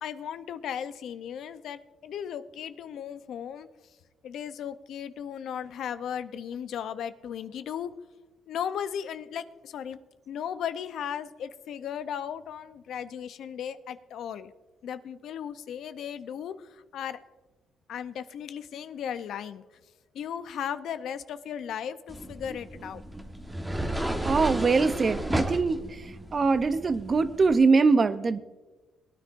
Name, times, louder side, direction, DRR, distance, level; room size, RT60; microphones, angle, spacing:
voice 1, 0.0-3.7 4.2-7.9 8.5-10.0 10.3-14.5 14.8-17.2 17.9-19.6 20.1-23.0, left 8 dB, 75° left, 12 dB, 0.6 m, -36 dB
sound 1, 22.1-27.6, right 1 dB, 10° right, 1.3 m, -33 dB
voice 2, 24.2-25.8 26.3-28.4, right 4 dB, 35° right, 13 dB, 0.6 m, -22 dB
21.5 x 10.0 x 2.6 m, 1.2 s
cardioid pair, 90°, 0 cm